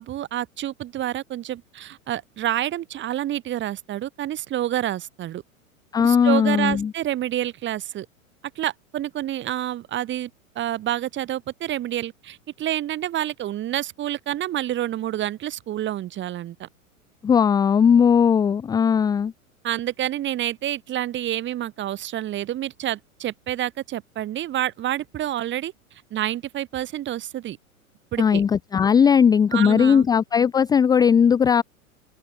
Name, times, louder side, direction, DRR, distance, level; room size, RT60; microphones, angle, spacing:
voice 1, 0.0-5.4 6.0-8.1 8.6-10.3 10.6-16.7 19.6-25.7 26.1-27.6 28.1-28.4 29.5-30.1, right 12 dB, 25° right, 3.8 m, -28 dB
voice 2, 5.9-6.9 17.2-19.3 28.2-31.6, left 7 dB, 10° left, 0.6 m, -18 dB
open air
figure-of-eight pair, 100°, 42 cm